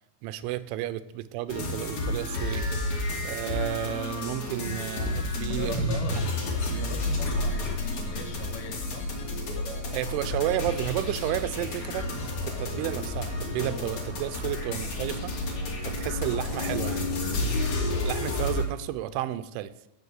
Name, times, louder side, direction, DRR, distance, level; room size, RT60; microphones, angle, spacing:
voice 1, 0.2-2.7 3.2-6.0 9.9-12.1 12.4-15.3 15.8-17.1 18.0-19.7, right 13 dB, 90° right, 13 dB, 3.1 m, -32 dB
sound 1, 1.5-18.6, left 2 dB, 40° left, 3.5 m, -30 dB
voice 2, 5.5-9.1, left 6 dB, 70° left, 4 dB, 3.5 m, -40 dB
12.5 x 8.0 x 8.1 m, 0.95 s
omnidirectional pair, 5.5 m